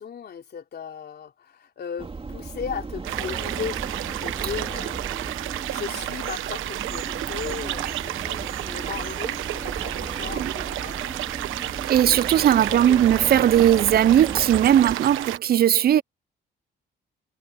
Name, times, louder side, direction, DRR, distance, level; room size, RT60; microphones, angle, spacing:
voice 1, 0.0-5.0 5.7-11.1 12.7-13.1, left 7 dB, 55° left, 3.4 m, -36 dB
sound 1, 2.0-15.0, right 4 dB, 30° right, 2.9 m, -36 dB
sound 2, 3.0-15.4, right 14 dB, 85° right, 1.1 m, -31 dB
voice 2, 11.9-16.0, right 11 dB, 50° right, 0.5 m, -18 dB
cardioid pair, 90°, 20 cm